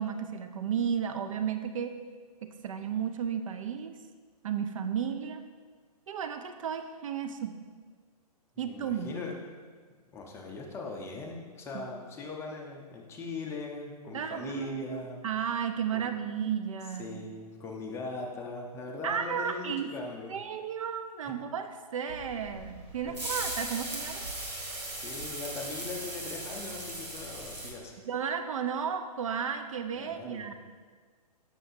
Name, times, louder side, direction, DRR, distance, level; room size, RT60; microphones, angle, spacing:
voice 1, 0.0-2.0 2.4-4.0 4.4-5.4 6.1-7.5 8.6-9.1 11.7-11.9 14.1-17.3 19.0-19.9 20.3-24.2 28.1-30.5, right 7 dB, 55° right, 7 dB, 0.5 m, -33 dB
voice 2, 8.5-9.4 10.1-15.2 15.9-16.1 17.0-20.3 23.1-23.2 24.9-27.9 30.0-30.5, left 3 dB, 15° left, 0 dB, 0.7 m, -40 dB
sound 1, 22.1-27.7, right 1 dB, 85° right, 1.6 m, -38 dB
7.5 x 6.2 x 2.7 m, 1.5 s
figure-of-eight pair, 120°, 20 cm